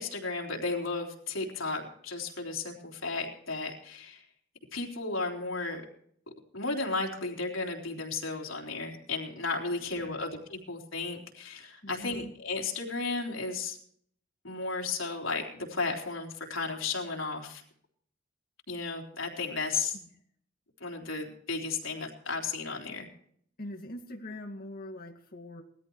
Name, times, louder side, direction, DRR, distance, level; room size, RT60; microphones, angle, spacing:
voice 1, 0.0-4.2 4.7-5.8 6.5-13.8 14.4-17.6 18.7-20.0 20.8-23.1, left 3 dB, 85° left, 1 dB, 3.6 m, -34 dB
voice 2, 9.8-10.2 11.8-12.3 19.9-20.1 23.6-25.6, left 1 dB, 50° left, 1 dB, 2.1 m, -43 dB
20.0 x 14.0 x 3.1 m, 0.62 s
head